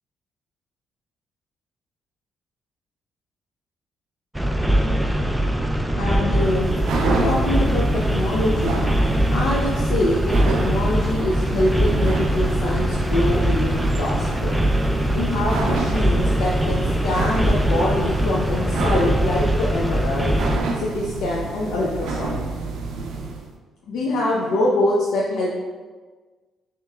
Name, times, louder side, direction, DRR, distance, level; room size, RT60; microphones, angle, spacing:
sound 1, 4.3-20.6, right 1 dB, 5° right, 0.3 m, -22 dB
voice 1, 6.0-6.7 7.0-8.8 9.3-14.6 15.1-20.4 20.8-22.5 23.9-25.5, left 2 dB, 85° left, -5 dB, 0.5 m, -24 dB
sound 2, 6.3-23.5, right 3 dB, 75° right, 0.5 m, -29 dB
5.7 x 3.0 x 2.3 m, 1.4 s
cardioid pair, 90°, 0 cm